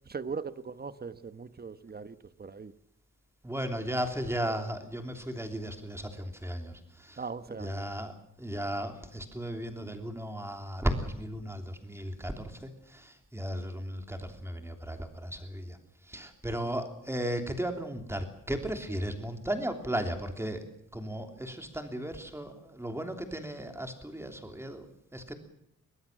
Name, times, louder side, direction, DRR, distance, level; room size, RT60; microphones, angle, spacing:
voice 1, 0.1-2.7 7.2-7.8, right 5 dB, 30° right, 13 dB, 1.2 m, -40 dB
voice 2, 3.4-7.2 7.5-15.8 16.0-20.7 20.9-24.9 25.1-25.3, equal, 10° right, 6 dB, 3.2 m, -35 dB
22.5 x 20.5 x 7.4 m, 0.75 s
wide cardioid pair, 150°, 31 cm